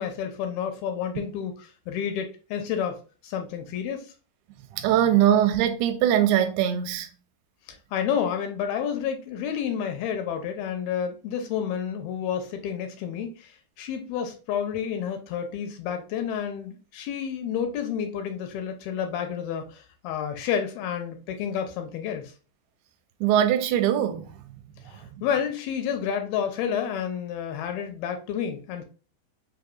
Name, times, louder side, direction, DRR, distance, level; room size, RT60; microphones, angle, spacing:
voice 1, 0.0-1.5 1.9-4.1 7.9-22.3 24.9-28.8, left 8 dB, 80° left, 2.4 m, -30 dB
voice 2, 4.7-7.1 23.2-24.3, right 10 dB, 85° right, 2.4 m, -21 dB
5.9 x 2.7 x 2.2 m
omnidirectional pair, 4.5 m